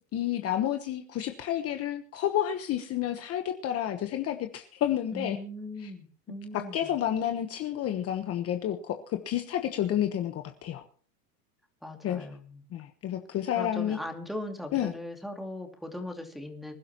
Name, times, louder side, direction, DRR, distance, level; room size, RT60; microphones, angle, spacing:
voice 1, 0.1-5.4 5.8-5.9 6.5-10.8 12.0-12.3 12.7-14.0 14.7-14.9, left 11 dB, 30° left, 6 dB, 1.2 m, -30 dB
voice 2, 5.1-6.9 11.8-12.6 13.5-16.7, left 1 dB, ahead, 2 dB, 2.6 m, -39 dB
26.0 x 11.5 x 3.0 m, 0.42 s
supercardioid pair, 140°, 45 cm